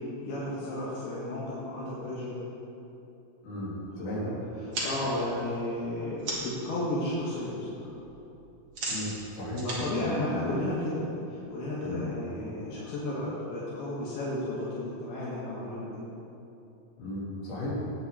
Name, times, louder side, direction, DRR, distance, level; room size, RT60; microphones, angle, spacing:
voice 1, 0.2-2.4 4.0-4.3 4.8-7.9 9.6-11.0 11.5-16.0, left 1 dB, 80° left, -8 dB, 4.1 m, -33 dB
voice 2, 3.4-4.3 8.9-9.7 10.0-10.1 11.8-12.0 17.0-17.8, left 1 dB, 55° left, -8 dB, 5.2 m, -35 dB
sound 1, 4.6-6.7 7.0-7.5 7.7-11.0, right 2 dB, 45° right, 3.0 m, -37 dB
19.5 x 9.6 x 4.3 m, 2.9 s
omnidirectional pair, 4.3 m